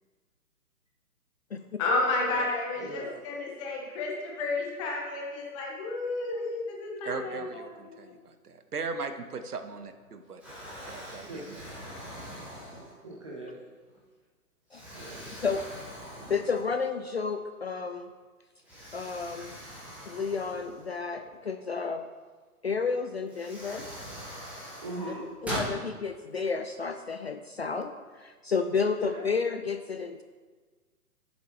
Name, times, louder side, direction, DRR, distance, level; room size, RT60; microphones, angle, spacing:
voice 1, 1.8-8.1, left 2 dB, 20° left, -1 dB, 1.5 m, -31 dB
voice 2, 2.8-3.1 7.2-7.4 11.3-11.5 13.0-13.6 14.9-15.4 24.8-25.3 28.8-29.2, right 1 dB, 20° right, -3 dB, 0.6 m, -40 dB
voice 3, 7.0-10.4 10.9-11.6, right 4 dB, 75° right, 9 dB, 0.9 m, -38 dB
Explosion, 9.7-10.1 10.4-13.2 13.8-14.0 14.7-17.0 17.3-17.4 18.6-21.3 22.7-22.8 23.3-25.8, equal, 5° right, 1.6 m, -41 dB
voice 4, 16.3-18.1 18.9-19.6 20.1-22.0 22.6-23.9 25.4-30.2, left 5 dB, 45° left, 7 dB, 0.4 m, -31 dB
12.5 x 7.3 x 3.1 m, 1.4 s
figure-of-eight pair, 135°, 46 cm